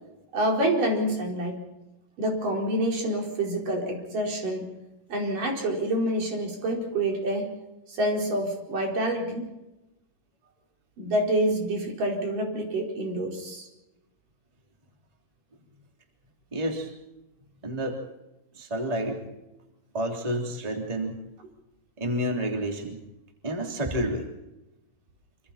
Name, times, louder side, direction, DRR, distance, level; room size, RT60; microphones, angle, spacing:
voice 1, 0.3-1.6 2.2-4.7 5.1-7.5 7.9-9.4 11.0-13.7, right 1 dB, 80° right, 0 dB, 6.2 m, -27 dB
voice 2, 16.5-16.9 17.6-18.0 18.5-19.2 19.9-21.2 22.0-23.0 23.4-24.3, equal, 10° right, 1 dB, 3.1 m, -29 dB
27.0 x 26.0 x 4.3 m, 0.97 s
omnidirectional pair, 3.8 m